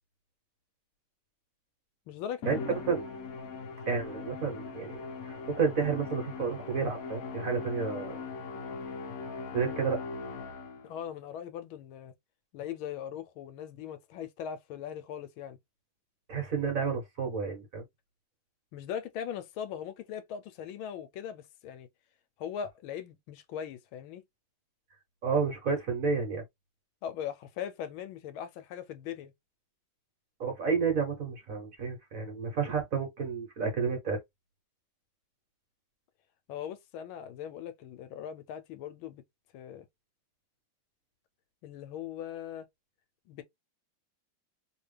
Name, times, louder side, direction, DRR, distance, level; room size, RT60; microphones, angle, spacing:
voice 1, 2.1-2.6 10.8-12.1 12.5-15.6 18.7-21.9 22.4-24.2 27.0-29.3 36.5-39.2 39.5-39.9 41.6-42.7 43.3-43.4, left 9 dB, 85° left, 1.4 m, -40 dB
Musical instrument, 2.4-11.0, left 4 dB, 65° left, 0.9 m, -40 dB
voice 2, 3.9-8.2 9.5-10.0 16.3-17.8 25.2-26.4 30.4-34.2, right 5 dB, 45° right, 1.4 m, -31 dB
3.1 x 2.9 x 3.2 m
omnidirectional pair, 2.3 m